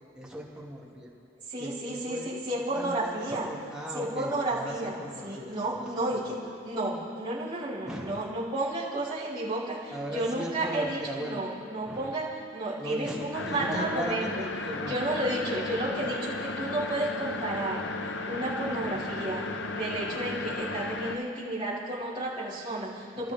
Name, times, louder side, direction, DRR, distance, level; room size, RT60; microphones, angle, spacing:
voice 1, 0.2-1.1 1.6-6.5 7.8-8.2 9.9-11.4 11.9-12.1 12.8-15.0 16.0-16.2 23.1-23.3, equal, 5° right, -5 dB, 2.4 m, -38 dB
voice 2, 1.5-3.5 3.9-4.9 5.2-6.3 6.6-12.2 12.5-14.3 14.9-17.8 18.2-19.4 19.7-23.3, right 1 dB, 25° right, -12 dB, 5.2 m, -32 dB
sound 1, 13.3-21.2, left 2 dB, 60° left, 1.0 m, -34 dB
29.5 x 13.5 x 3.6 m, 2.5 s
head